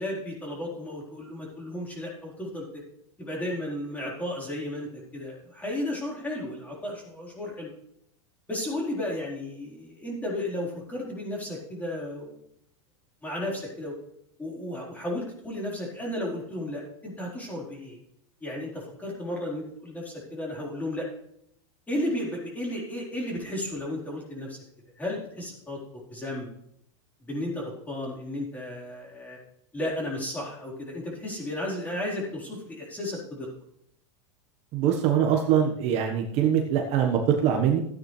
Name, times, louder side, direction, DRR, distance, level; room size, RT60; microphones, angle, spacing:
voice 1, 0.0-2.8 3.2-7.7 8.5-12.4 13.2-13.9 14.4-18.0 18.4-21.1 21.9-24.6 25.0-25.8 26.1-26.5 27.2-29.4 29.7-33.5, left 1 dB, 10° left, -3 dB, 4.3 m, -33 dB
voice 2, 34.7-37.8, right 9 dB, 45° right, 2 dB, 1.4 m, -23 dB
14.0 x 9.4 x 3.3 m, 0.74 s
supercardioid pair, 140°, 15 cm